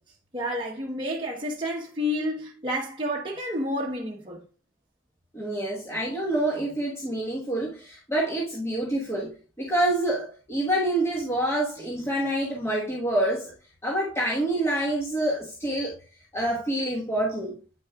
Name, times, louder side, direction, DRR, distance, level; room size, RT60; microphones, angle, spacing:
voice 1, 0.3-4.4, left 1 dB, 25° right, 1.0 m, -30 dB
voice 2, 5.3-13.5 13.8-16.0 16.3-17.6, right 1 dB, 15° left, 1.3 m, -27 dB
9.0 x 6.3 x 2.3 m
head